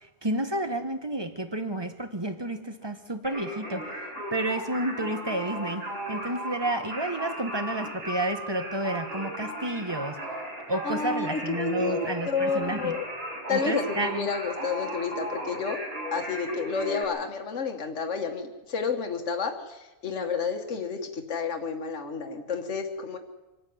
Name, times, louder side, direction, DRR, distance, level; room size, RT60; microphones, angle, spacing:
voice 1, 0.0-5.8 6.1-10.3 10.7-13.0 13.5-14.3, right 1 dB, 20° right, 8 dB, 1.6 m, -31 dB
Singing, 3.2-17.0, equal, 50° right, 6.0 m, -36 dB
voice 2, 10.8-13.0 13.5-15.8 16.1-23.2, left 5 dB, 65° left, 4 dB, 1.9 m, -30 dB
25.0 x 12.5 x 9.5 m, 1.1 s
omnidirectional pair, 1.3 m